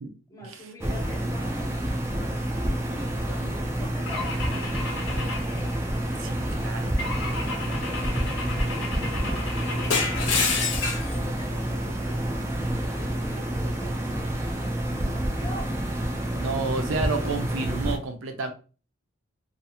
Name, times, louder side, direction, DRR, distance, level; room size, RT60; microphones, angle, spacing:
voice 1, 0.3-1.9 2.9-4.9 6.2-6.8 7.3-8.5 9.0-10.5 11.0-14.3 14.6-15.8, left 1 dB, 15° left, 0.7 m, -44 dB
sound 1, 0.8-18.0, right 1 dB, 15° right, 0.3 m, -28 dB
Car / Engine / Glass, 4.1-6.3 7.0-11.2, left 4 dB, 65° left, 0.6 m, -30 dB
voice 2, 6.6-6.9 16.3-18.5, right 3 dB, 85° right, 0.5 m, -30 dB
2.4 x 2.3 x 2.7 m
head